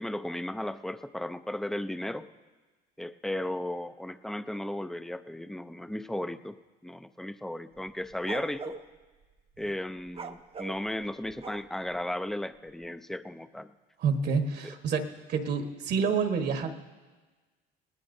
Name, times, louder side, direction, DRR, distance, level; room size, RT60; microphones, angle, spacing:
voice 1, 0.0-2.3 3.0-6.6 6.8-8.8 9.6-13.7, left 1 dB, ahead, 11 dB, 0.4 m, -35 dB
sound 1, 7.8-8.8 10.1-11.9, right 5 dB, 30° right, 0.7 m, -41 dB
voice 2, 14.0-16.8, right 5 dB, 60° right, 5 dB, 1.3 m, -28 dB
21.0 x 18.0 x 2.7 m, 1.3 s
cardioid pair, 100°, 20 cm